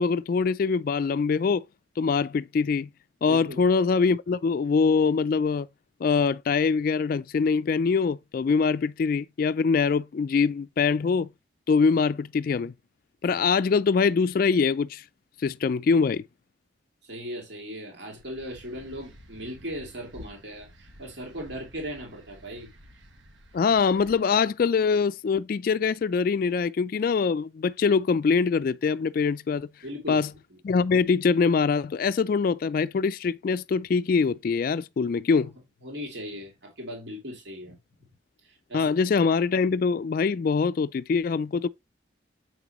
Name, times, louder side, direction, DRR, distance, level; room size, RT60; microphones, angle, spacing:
voice 1, 0.0-1.6 2.0-2.9 3.2-5.7 6.0-11.3 11.7-12.7 13.2-15.0 15.4-16.2 23.5-29.7 30.1-30.3 30.6-35.5 38.7-41.7, left 5 dB, 50° left, 0.3 m, -23 dB
voice 2, 3.3-3.6 17.0-22.7 29.8-30.6 35.8-37.8 38.4-38.9, equal, 60° right, 2.6 m, -38 dB
sound 1, 18.1-24.2, equal, 75° right, 1.4 m, -51 dB
7.6 x 5.9 x 3.0 m
head